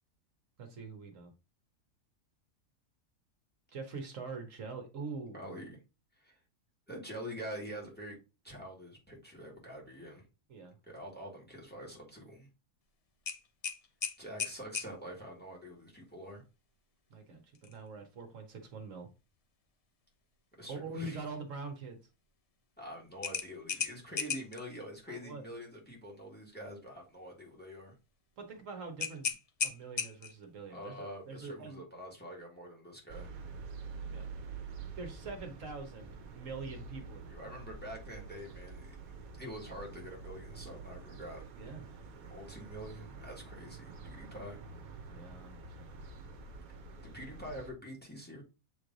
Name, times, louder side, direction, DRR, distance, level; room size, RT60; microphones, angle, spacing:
voice 1, 0.6-1.3 3.7-5.4 10.5-10.8 17.1-19.1 20.7-22.0 25.1-25.4 28.4-29.4 29.6-31.8 34.1-34.3 35.0-37.5 41.5-41.8 45.1-46.4, right 4 dB, 65° right, 5 dB, 1.4 m, -44 dB
voice 2, 5.3-5.8 6.2-6.4 6.9-10.3 10.9-12.5 14.2-16.4 20.6-21.2 22.8-27.9 30.7-33.3 37.3-39.0 39.4-41.4 42.2-44.6 47.0-48.4, equal, 5° left, -1 dB, 1.8 m, -46 dB
sound 1, 13.3-14.9 17.5-17.8 18.2-18.3 23.2-24.6 29.0-30.4, left 6 dB, 45° left, 0.5 m, -36 dB
sound 2, 33.1-47.7, right 4 dB, 90° right, 1.2 m, -47 dB
7.5 x 3.3 x 3.9 m, 0.30 s
omnidirectional pair, 1.4 m